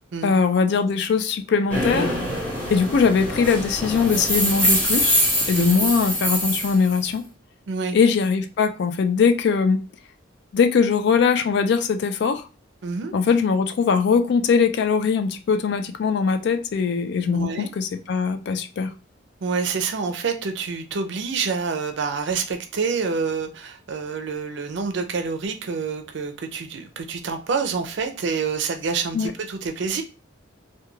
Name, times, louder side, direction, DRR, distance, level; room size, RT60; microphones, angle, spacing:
voice 1, 0.2-2.1 2.7-5.2 5.5-7.2 7.9-9.8 10.5-12.5 13.1-18.9 29.1-29.3, left 5 dB, 60° left, 0.3 m, -21 dB
sound 1, 1.7-7.1, equal, 10° left, 0.9 m, -24 dB
voice 2, 5.5-5.9 7.7-8.0 12.8-13.1 17.3-17.7 19.4-30.0, right 5 dB, 60° right, 0.4 m, -27 dB
2.3 x 2.2 x 3.0 m
head